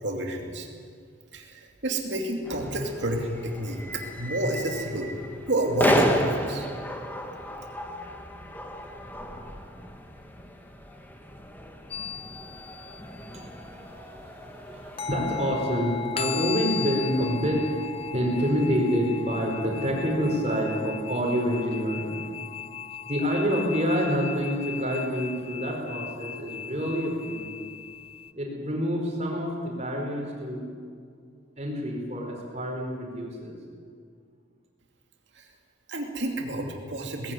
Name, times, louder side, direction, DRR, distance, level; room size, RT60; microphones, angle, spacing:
voice 1, 0.0-0.7 1.3-5.1 5.5-6.7 35.4-35.5 35.9-37.3, right 1 dB, 65° right, 2 dB, 2.6 m, -29 dB
sound 1, 2.4-15.6, left 1 dB, 10° left, 1.4 m, -33 dB
sound 2, 11.9-13.4 15.0-28.3, left 8 dB, 30° left, 0.7 m, -37 dB
voice 2, 13.3-22.2 23.1-27.6 28.4-30.6 31.6-33.6, equal, 35° right, 0 dB, 4.6 m, -27 dB
19.5 x 16.0 x 9.3 m, 2.1 s
head